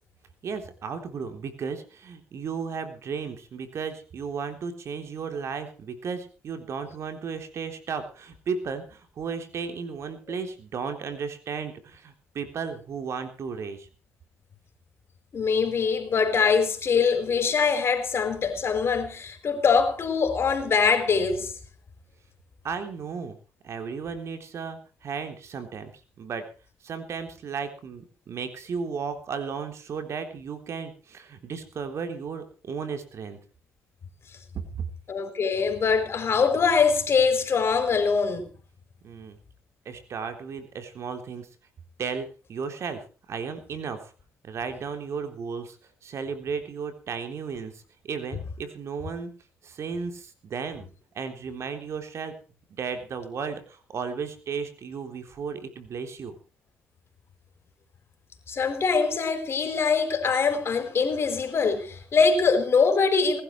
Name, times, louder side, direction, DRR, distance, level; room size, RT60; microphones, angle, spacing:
voice 1, 0.4-13.9 22.6-23.4 23.6-25.9 26.2-26.4 26.8-33.4 34.7-34.8 39.0-39.4 39.9-41.5 42.0-44.1 44.4-45.8 46.0-49.3 49.6-50.9 51.1-52.3 52.8-56.4, right 5 dB, 60° right, 3.6 m, -34 dB
voice 2, 15.3-21.5 35.1-38.5 58.5-63.4, left 5 dB, 50° left, 4.4 m, -23 dB
20.0 x 12.0 x 4.7 m
supercardioid pair, 65°, 5 cm